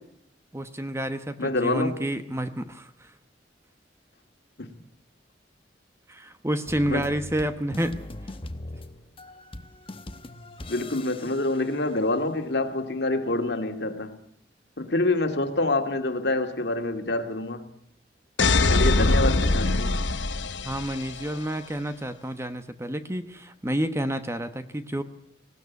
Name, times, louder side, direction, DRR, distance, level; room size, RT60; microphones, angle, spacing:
voice 1, 0.5-3.1 6.1-8.0 20.6-25.0, right 1 dB, 15° right, 1.1 m, -29 dB
voice 2, 1.4-2.0 4.6-4.7 6.9-7.1 10.7-14.2 14.8-17.6 18.7-19.9, left 2 dB, 65° left, 2.1 m, -26 dB
sound 1, 6.7-12.5, left 1 dB, 30° left, 1.0 m, -41 dB
sound 2, 18.4-21.3, left 3 dB, 85° left, 1.1 m, -22 dB
19.0 x 17.5 x 8.3 m
head